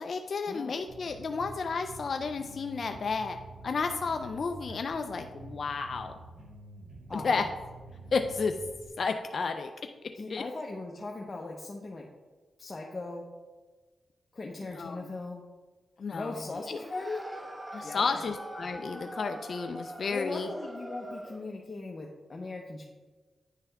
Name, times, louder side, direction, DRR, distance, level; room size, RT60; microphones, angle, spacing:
voice 1, 0.0-6.1 7.1-7.4 8.1-8.5 9.0-9.7 10.3-10.4 14.7-15.0 16.0-16.8 17.7-20.5, left 4 dB, 60° left, 6 dB, 0.4 m, -32 dB
sound 1, 0.9-8.9, right 2 dB, 70° right, 1.6 m, -48 dB
voice 2, 7.1-7.5 10.1-12.1 12.6-13.2 14.3-15.4 16.1-17.2 17.8-18.2 20.1-22.8, left 3 dB, 40° left, -1 dB, 0.8 m, -39 dB
sound 2, 16.7-21.5, right 1 dB, 10° right, 0.6 m, -43 dB
9.9 x 3.4 x 3.4 m, 1.3 s
cardioid pair, 50°, 0 cm